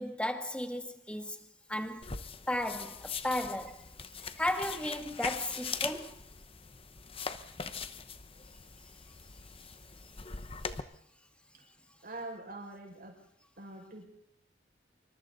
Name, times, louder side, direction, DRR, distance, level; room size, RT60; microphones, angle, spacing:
voice 1, 0.0-2.1 2.5-3.9 4.4-6.2, left 1 dB, 5° left, 1.7 m, -35 dB
sound 1, 2.0-10.8, left 5 dB, 30° left, 1.0 m, -41 dB
voice 2, 12.0-13.2 13.6-14.1, right 2 dB, 55° right, 5.9 m, -44 dB
26.5 x 25.0 x 4.1 m
head